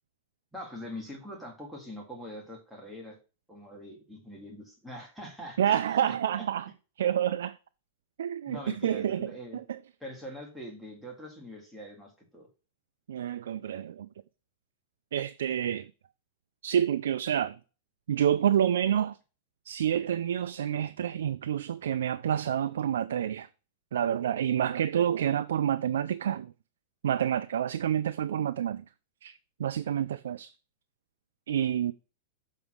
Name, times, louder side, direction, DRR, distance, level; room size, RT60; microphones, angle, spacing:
voice 1, 0.5-3.2 3.5-6.2 8.5-9.6 10.0-12.5, equal, ahead, 2.1 m, -43 dB
voice 2, 5.6-6.7 7.0-7.6 8.2-9.8 13.1-14.1 15.1-15.9 16.6-17.6 18.1-19.2 19.7-23.5 23.9-26.5 27.0-28.8 29.2-29.3 29.6-30.5 31.5-31.9, right 9 dB, 90° right, 0.4 m, -28 dB
7.1 x 4.1 x 6.3 m
supercardioid pair, 155°, 0 cm